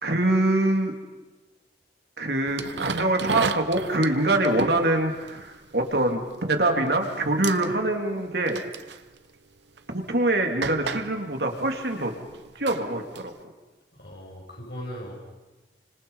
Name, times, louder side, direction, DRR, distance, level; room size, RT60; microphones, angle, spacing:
voice 1, 0.0-0.9 2.2-9.0 9.9-12.1 12.5-13.3, right 2 dB, 70° right, 3 dB, 3.0 m, -24 dB
sound 1, 2.5-6.7 6.9-7.2 7.4-7.7 8.5-9.0 9.8-9.9 10.6-13.4, right 4 dB, 90° right, 0.9 m, -33 dB
voice 2, 13.9-15.1, equal, 65° left, -1 dB, 7.4 m, -38 dB
29.5 x 26.0 x 5.6 m, 1.2 s
head